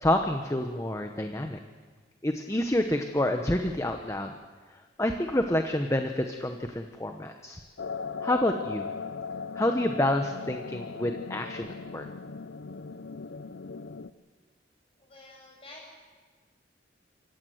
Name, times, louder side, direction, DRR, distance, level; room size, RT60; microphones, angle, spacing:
voice 1, 0.0-1.6 2.2-4.3 5.0-7.6 8.2-8.9 9.6-12.0, left 1 dB, 15° left, 5 dB, 1.0 m, -28 dB
sound 1, 7.8-14.1, left 5 dB, 85° left, 0.7 m, -38 dB
voice 2, 15.0-15.9, left 2 dB, 30° left, -1 dB, 7.5 m, -49 dB
26.5 x 15.5 x 7.9 m, 1.5 s
head